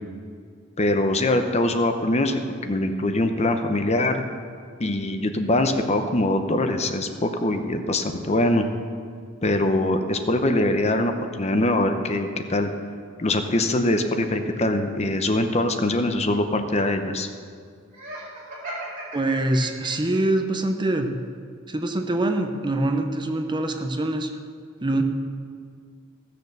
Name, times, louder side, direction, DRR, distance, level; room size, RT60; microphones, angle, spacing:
voice 1, 0.8-4.2 4.8-8.7 9.4-12.7 13.2-17.3, left 1 dB, 30° left, 7 dB, 0.8 m, -23 dB
Laughter, 17.9-20.2, right 1 dB, 40° right, 3.8 m, -36 dB
voice 2, 19.1-21.1 21.7-24.3 24.8-25.0, right 1 dB, 20° right, 5 dB, 0.8 m, -24 dB
16.0 x 6.7 x 6.7 m, 2.1 s
head